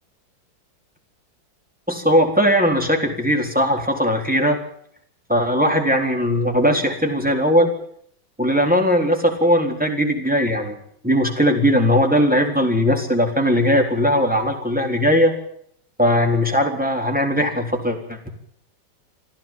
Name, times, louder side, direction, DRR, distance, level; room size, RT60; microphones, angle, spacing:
voice 1, 1.9-4.6 5.3-7.7 8.4-10.8 11.0-15.3 16.0-18.3, equal, 5° right, 3 dB, 3.8 m, -19 dB
25.5 x 14.5 x 7.5 m, 0.66 s
omnidirectional pair, 1.9 m